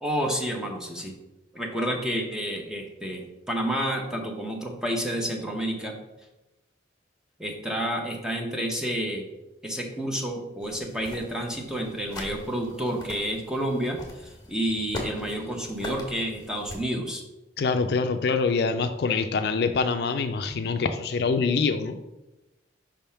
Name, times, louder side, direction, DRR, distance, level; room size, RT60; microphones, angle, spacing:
voice 1, 0.0-1.1 1.5-5.9 7.4-9.3 9.6-17.2, equal, 5° right, 1 dB, 0.8 m, -30 dB
sound 1, 10.6-16.8, left 1 dB, 20° left, 1.4 m, -41 dB
voice 2, 17.6-22.0, left 4 dB, 55° left, 8 dB, 0.4 m, -25 dB
5.3 x 3.6 x 5.6 m, 0.99 s
head